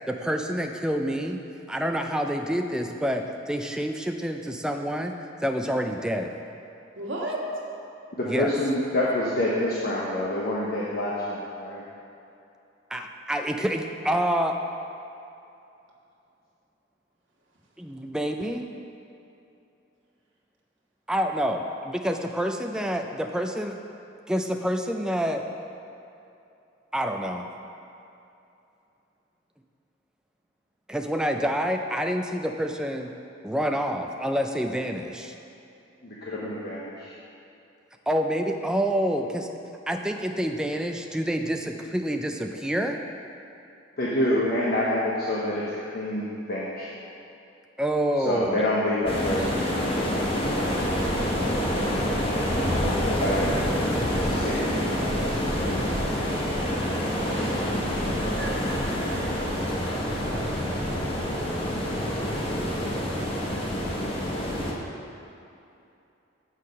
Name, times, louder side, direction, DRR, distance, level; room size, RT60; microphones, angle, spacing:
voice 1, 0.1-1.4 1.7-5.1 5.4-6.4 8.3-8.5 12.9-14.6 17.8-18.7 21.1-23.8 24.3-25.4 26.9-27.5 30.9-33.1 33.4-35.3 38.1-39.5 39.9-43.0 47.8-48.7, equal, 5° right, 3 dB, 0.3 m, -27 dB
voice 2, 6.9-7.4 50.4-52.3 57.3-57.8 58.3-59.1, right 1 dB, 75° right, -4 dB, 1.5 m, -37 dB
voice 3, 8.2-11.8 36.0-37.1 44.0-45.6 45.9-47.0 48.2-49.9 52.7-53.6 54.2-54.8 55.2-55.3 55.5-56.4, left 1 dB, 50° left, -6 dB, 0.9 m, -27 dB
sound 1, 49.1-64.7, equal, 30° left, 1.1 m, -27 dB
7.3 x 6.5 x 5.2 m, 2.8 s
head